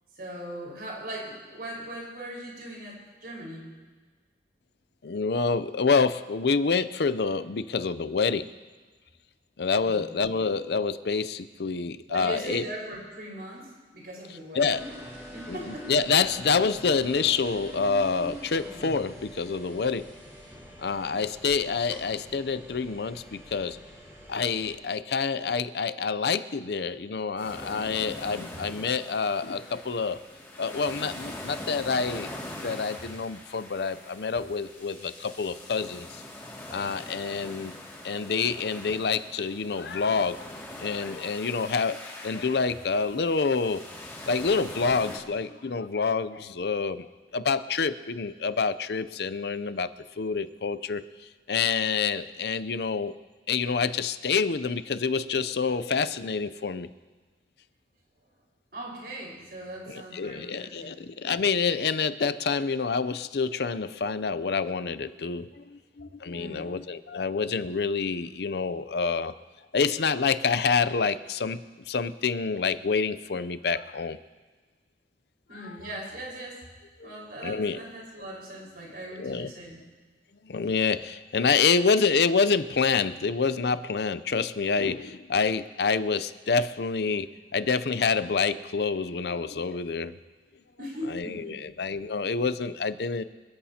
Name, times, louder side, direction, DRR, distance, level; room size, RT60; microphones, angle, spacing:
voice 1, 0.1-3.7 9.8-10.0 12.1-13.7 13.9-14.9 15.3-15.9 16.4-16.5 28.3-28.6 58.7-61.0 66.3-66.7 75.5-76.6 77.0-79.8 90.8-91.8, right 1 dB, 60° right, -4 dB, 4.8 m, -39 dB
voice 2, 5.0-8.5 9.6-12.6 14.6-14.8 15.5-20.1 20.8-23.8 24.3-30.2 30.6-36.1 36.7-37.7 38.0-40.4 40.8-42.0 42.2-43.8 44.3-47.1 47.3-49.9 50.2-51.0 51.5-53.1 53.5-56.9 59.9-69.3 69.7-74.2 75.6-75.8 77.0-77.1 77.4-77.8 79.2-79.5 80.4-90.2 91.1-93.2, left 5 dB, 70° left, 14 dB, 0.5 m, -27 dB
sound 1, 14.6-24.8, equal, 15° right, 4.0 m, -45 dB
sound 2, 27.4-45.2, left 1 dB, 15° left, 2.3 m, -42 dB
27.0 x 13.0 x 2.9 m, 1.4 s
head